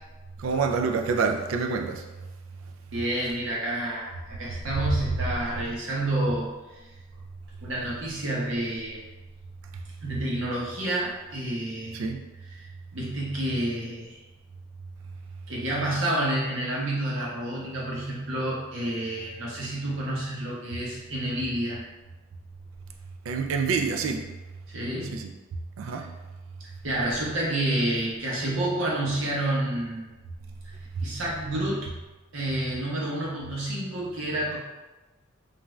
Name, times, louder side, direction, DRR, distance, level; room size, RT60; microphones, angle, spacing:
voice 1, 0.4-2.1 11.9-12.2 23.2-24.3 25.0-25.3 25.8-26.1 31.0-31.1, right 5 dB, 90° right, 4 dB, 0.3 m, -27 dB
voice 2, 2.9-6.5 7.6-9.0 10.0-12.0 12.6-14.2 15.5-21.8 24.7-25.2 25.8-26.0 26.8-30.1 31.0-31.9 32.3-34.6, right 1 dB, 70° right, -5 dB, 0.8 m, -29 dB
2.5 x 2.3 x 3.1 m, 1.1 s
head